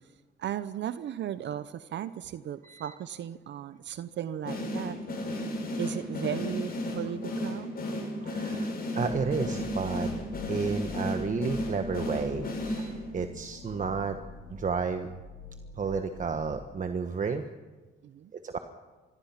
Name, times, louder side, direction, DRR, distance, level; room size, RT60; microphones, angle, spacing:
voice 1, 0.4-5.0 5.8-7.7 18.0-18.3, right 10 dB, 65° right, 13 dB, 0.8 m, -36 dB
sound 1, 4.5-13.3, left 1 dB, 50° left, 7.4 m, -34 dB
voice 2, 8.2-10.1 10.5-14.2 14.5-15.1 15.8-17.4 18.3-18.6, right 5 dB, 40° right, 7 dB, 1.3 m, -32 dB
sound 2, 9.1-16.6, left 4 dB, 75° left, 6.9 m, -46 dB
25.5 x 21.5 x 5.9 m, 1.3 s
cardioid pair, 90°, 20 cm